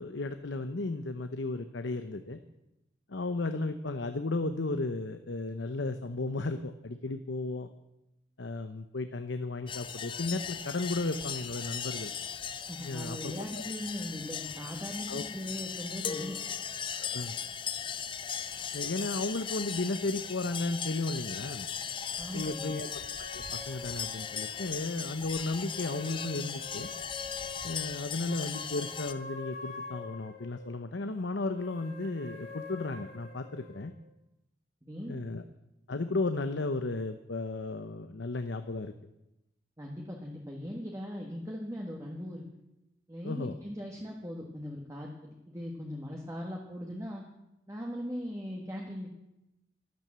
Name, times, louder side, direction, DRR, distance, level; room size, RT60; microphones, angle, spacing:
voice 1, 0.0-2.4 3.1-7.7 8.4-12.1 12.8-13.4 15.1-15.2 17.0-17.4 18.7-21.7 22.3-23.0 23.3-26.9 27.6-33.9 35.1-35.4 35.9-38.9 43.2-43.6, left 2 dB, 80° left, 9 dB, 0.8 m, -34 dB
sound 1, 9.7-29.1, left 7 dB, 25° left, 0.6 m, -38 dB
voice 2, 12.7-16.4 22.2-22.7 34.8-35.2 39.8-42.4 43.1-47.2 47.7-49.1, equal, 15° right, 0 dB, 1.6 m, -39 dB
sound 2, 22.3-25.1 25.6-30.8 31.4-33.9, left 4 dB, 50° left, 2.9 m, -46 dB
12.5 x 12.5 x 7.5 m, 0.92 s
head